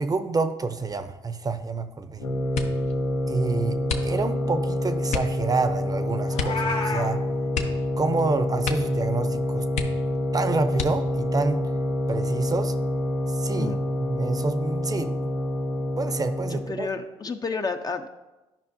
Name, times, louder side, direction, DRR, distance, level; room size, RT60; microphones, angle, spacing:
voice 1, 0.0-2.2 3.3-7.2 8.0-9.6 10.3-11.6 12.1-12.7 13.3-13.8 14.0-15.1 16.0-16.9, right 3 dB, 30° right, 10 dB, 0.6 m, -28 dB
sound 1, 2.2-16.8, left 1 dB, 85° left, 1.1 m, -27 dB
sound 2, 2.5-2.9 3.8-4.5 5.1-5.4 6.3-6.7 6.9-7.0 7.5-8.3 8.6-9.0 9.3-9.4 9.7-10.3 10.7-11.3 12.0-12.6 13.0-13.4, left 5 dB, 65° left, 0.8 m, -32 dB
Meow, 6.3-7.1, left 3 dB, 45° left, 2.0 m, -29 dB
voice 2, 16.5-18.1, left 4 dB, 30° left, 7 dB, 0.6 m, -31 dB
12.0 x 5.2 x 2.6 m, 1.1 s
supercardioid pair, 65°, 13 cm